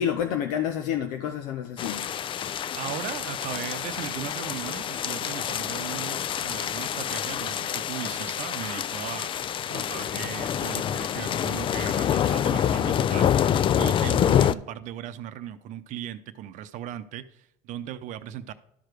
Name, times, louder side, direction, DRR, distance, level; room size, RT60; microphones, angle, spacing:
voice 1, 0.0-2.1, left 9 dB, 85° left, 6 dB, 0.7 m, -28 dB
sound 1, 1.8-14.5, left 9 dB, 40° left, 0.4 m, -27 dB
voice 2, 2.7-9.3 9.7-13.3 13.8-18.5, right 11 dB, 65° right, 11 dB, 0.7 m, -37 dB
12.0 x 4.9 x 4.6 m, 0.76 s
supercardioid pair, 100°, 14 cm